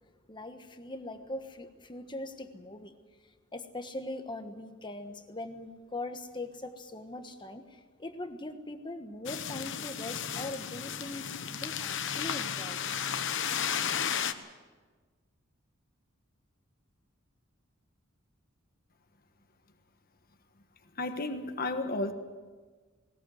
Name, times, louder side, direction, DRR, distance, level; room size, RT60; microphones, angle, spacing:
voice 1, 0.3-2.9 3.5-12.8, left 2 dB, 20° left, 7 dB, 1.3 m, -41 dB
sound 1, 9.3-14.3, left 8 dB, 60° left, 1.1 m, -33 dB
voice 2, 21.0-22.1, left 2 dB, 45° left, 7 dB, 1.5 m, -32 dB
20.0 x 19.5 x 7.9 m, 1.4 s
head